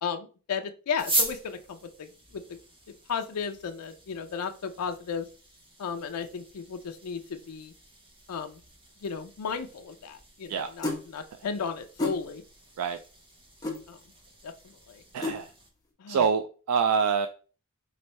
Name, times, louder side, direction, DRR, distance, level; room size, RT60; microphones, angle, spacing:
voice 1, 0.0-2.6 3.1-5.3 5.8-7.7 8.3-8.6 9.0-12.4 13.9-14.0 14.4-15.0 16.0-16.3, left 6 dB, 85° left, 8 dB, 0.4 m, -35 dB
sound 1, 0.9-15.7, right 2 dB, 25° right, 0.9 m, -40 dB
sound 2, 10.8-11.0 12.0-12.2 13.6-13.8 15.2-15.4, left 2 dB, 15° left, 0.9 m, -29 dB
voice 2, 15.1-15.5 16.1-17.3, right 6 dB, 90° right, 7 dB, 0.3 m, -26 dB
3.2 x 2.6 x 4.2 m, 0.37 s
head